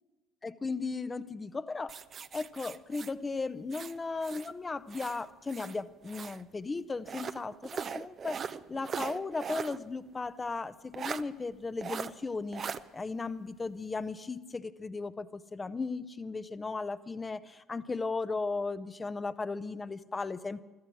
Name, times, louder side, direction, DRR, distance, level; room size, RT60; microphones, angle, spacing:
voice 1, 0.4-1.9 2.3-12.6 12.9-20.6, left 3 dB, 25° left, 13 dB, 0.8 m, -36 dB
sound 1, 1.9-4.5 4.9-6.4 7.0-9.8 10.1-10.2 10.9-11.2 11.8-12.1 12.5-12.8, right 7 dB, 40° right, 0.6 m, -40 dB
15.0 x 14.0 x 6.3 m, 1.2 s
hypercardioid pair, 60°, 0 cm